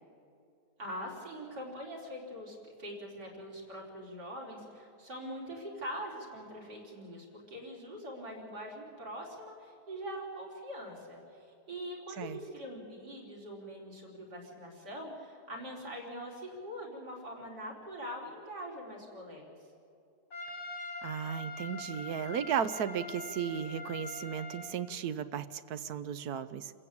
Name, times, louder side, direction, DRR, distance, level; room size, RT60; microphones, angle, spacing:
voice 1, 0.8-19.6, equal, 90° right, -2 dB, 4.7 m, -43 dB
Trumpet, 20.3-24.7, left 2 dB, 70° left, 3.3 m, -43 dB
voice 2, 21.0-26.7, right 8 dB, 70° right, 13 dB, 1.2 m, -35 dB
28.5 x 15.5 x 8.6 m, 2.5 s
omnidirectional pair, 1.7 m